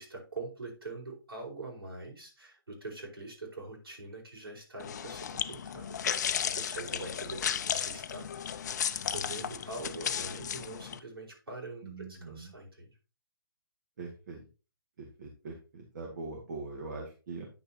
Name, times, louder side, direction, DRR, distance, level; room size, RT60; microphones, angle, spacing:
voice 1, 0.0-8.3 9.0-12.9, right 2 dB, 85° right, -1 dB, 4.8 m, -44 dB
sound 1, 4.8-11.0, left 8 dB, 50° left, 0.6 m, -34 dB
voice 2, 11.8-12.6 14.0-14.5 15.0-17.5, right 3 dB, 50° right, 1 dB, 1.9 m, -42 dB
9.6 x 6.6 x 2.9 m, 0.32 s
hypercardioid pair, 150°, 12 cm